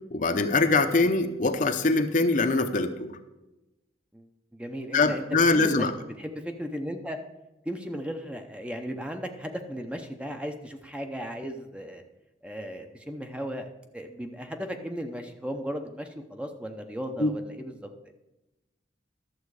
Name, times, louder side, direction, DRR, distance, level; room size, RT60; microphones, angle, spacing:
voice 1, 0.1-3.1 4.9-5.9 17.2-17.3, left 3 dB, 45° left, 7 dB, 0.7 m, -23 dB
voice 2, 4.5-5.9 6.2-7.2 7.6-12.0 12.4-18.1, equal, 5° right, 5 dB, 0.6 m, -36 dB
11.5 x 7.4 x 4.8 m, 1.0 s
head